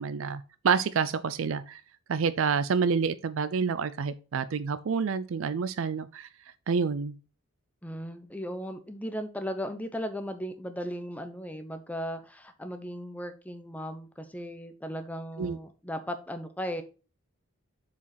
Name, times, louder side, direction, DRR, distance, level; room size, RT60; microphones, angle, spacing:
voice 1, 0.0-1.8 2.1-6.3 6.7-7.1 15.4-15.6, right 5 dB, 60° right, 0.4 m, -28 dB
voice 2, 7.8-16.8, equal, 5° left, 0.7 m, -36 dB
7.1 x 4.9 x 4.1 m
head